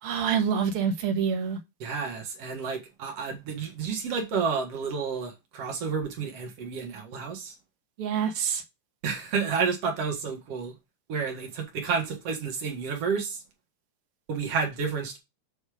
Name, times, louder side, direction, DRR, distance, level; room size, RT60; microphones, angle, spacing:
voice 1, 0.0-1.6 8.0-8.6, right 7 dB, 90° right, 1.2 m, -26 dB
voice 2, 1.8-7.5 9.0-10.8 11.1-13.4 14.3-15.2, right 5 dB, 50° right, 2.0 m, -30 dB
8.2 x 4.4 x 5.0 m
omnidirectional pair, 5.0 m